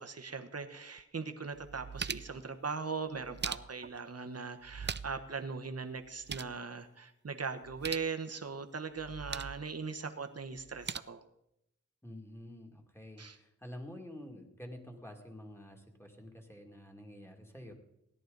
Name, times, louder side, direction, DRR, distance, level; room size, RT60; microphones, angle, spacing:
voice 1, 0.0-11.2 13.2-13.4, right 5 dB, 55° right, 7 dB, 1.2 m, -40 dB
sound 1, 1.0-1.1 1.5-2.4 3.1-4.0 4.6-5.3 5.6-5.7 6.0-6.6 7.6-8.1 9.0-9.6 10.6-11.0, right 6 dB, 35° right, 0.4 m, -41 dB
voice 2, 12.0-17.7, left 1 dB, 10° left, 3 dB, 2.3 m, -49 dB
17.0 x 11.0 x 4.0 m, 0.80 s
wide cardioid pair, 60°, 30 cm